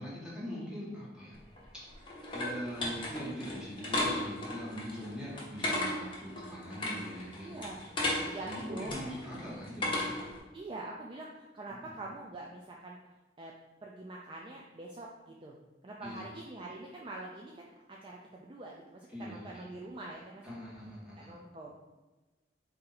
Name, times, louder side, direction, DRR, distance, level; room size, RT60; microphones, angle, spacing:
voice 1, 0.0-1.4 2.3-7.8 8.4-10.1 11.7-11.9 16.0-16.2 19.1-19.6 20.4-21.4, equal, 5° right, -7 dB, 1.3 m, -42 dB
sound 1, 1.4-10.4, left 1 dB, 30° left, 1.0 m, -36 dB
voice 2, 7.4-7.8 8.2-9.0 9.5-9.8 10.5-13.0 13.4-13.5 13.8-15.6 15.8-20.5 21.2-21.7, right 2 dB, 30° right, -2 dB, 0.3 m, -45 dB
4.2 x 2.7 x 3.9 m, 1.2 s
head